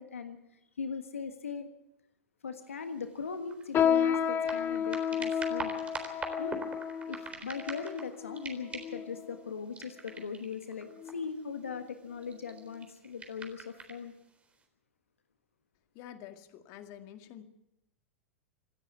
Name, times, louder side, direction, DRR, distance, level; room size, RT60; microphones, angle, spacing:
voice 1, 0.0-1.7 2.4-5.7 6.2-6.6 7.1-14.1, left 5 dB, 80° left, 8 dB, 1.5 m, -40 dB
sound 1, 2.7-2.8 3.2-8.1 8.3-9.1 9.7-11.4 12.1-14.0 14.6-14.7, right 4 dB, 20° right, 3.8 m, -43 dB
sound 2, 3.7-9.4 10.1-10.2 10.9-11.2 11.6-11.8 12.5-12.6, left 8 dB, 30° left, 1.0 m, -31 dB
voice 2, 15.9-17.4, left 10 dB, 50° left, 8 dB, 2.0 m, -48 dB
27.0 x 10.0 x 9.6 m, 0.86 s
hypercardioid pair, 95°, 7 cm